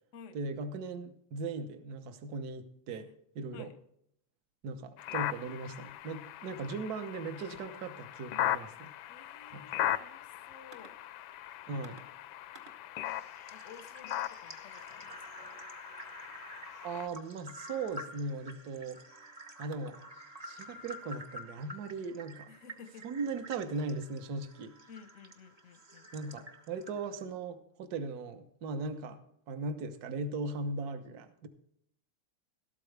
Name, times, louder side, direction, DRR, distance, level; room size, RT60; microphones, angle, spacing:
voice 1, 0.3-3.1 3.3-3.7 4.6-8.9 9.5-9.7 11.7-12.0 16.8-19.0 19.6-20.0 20.4-22.5 23.0-24.7 26.1-29.2 29.5-31.5, right 3 dB, 55° right, 9 dB, 1.3 m, -38 dB
sound 1, 5.0-17.1, left 13 dB, 75° left, 1.3 m, -39 dB
voice 2, 9.1-11.0 13.5-15.7 22.5-23.1 24.9-26.1, left 7 dB, 55° left, 11 dB, 0.9 m, -54 dB
sound 2, 10.7-10.9 11.8-12.0 12.5-12.7 13.0-27.2, right 1 dB, 30° right, 0.7 m, -50 dB
13.0 x 13.0 x 3.3 m, 0.72 s
omnidirectional pair, 2.3 m